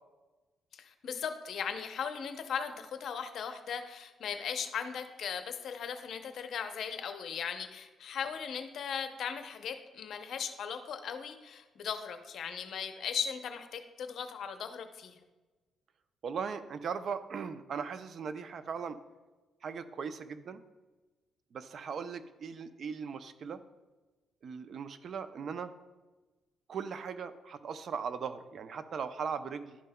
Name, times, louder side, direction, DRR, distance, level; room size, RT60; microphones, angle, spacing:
voice 1, 0.7-15.2, left 7 dB, 65° left, 8 dB, 0.6 m, -38 dB
voice 2, 16.2-19.0 19.6-20.6 21.5-23.6 24.4-25.7 26.7-29.8, right 6 dB, 55° right, 12 dB, 0.4 m, -38 dB
11.0 x 5.4 x 2.2 m, 1.2 s
cardioid pair, 90°, 0 cm